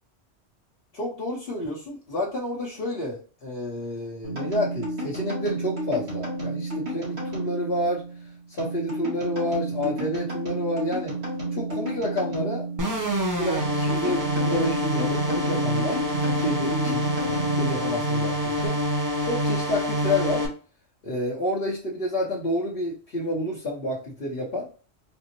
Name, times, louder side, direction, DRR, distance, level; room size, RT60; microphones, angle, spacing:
voice 1, 0.9-8.0 8.5-11.2 11.5-12.7 13.3-18.8 19.2-20.4 21.0-24.7, left 1 dB, 60° left, -6 dB, 1.1 m, -29 dB
sound 1, 4.2-18.7, right 2 dB, 80° right, 2.1 m, -32 dB
sound 2, 12.8-20.5, equal, 25° right, 0.5 m, -26 dB
4.3 x 2.0 x 2.7 m, 0.40 s
omnidirectional pair, 1.1 m